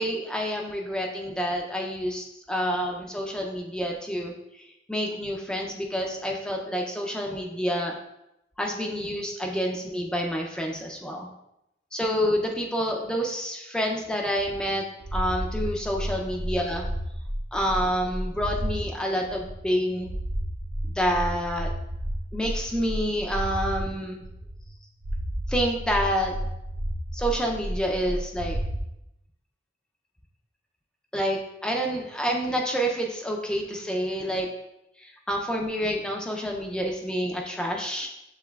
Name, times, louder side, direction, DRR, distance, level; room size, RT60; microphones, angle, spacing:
voice 1, 0.0-4.3 4.9-8.0 8.6-11.3 11.9-14.8 15.1-16.9 17.5-20.1 21.0-21.7 22.3-24.2 25.5-26.4 27.1-28.6 31.1-34.5 35.0-38.1, equal, 5° left, 0 dB, 0.4 m, -28 dB
sound 1, 14.4-18.8 19.2-23.8 24.2-24.8 25.0-28.8, equal, 80° right, 0.7 m, -32 dB
7.0 x 3.1 x 2.2 m, 0.86 s
head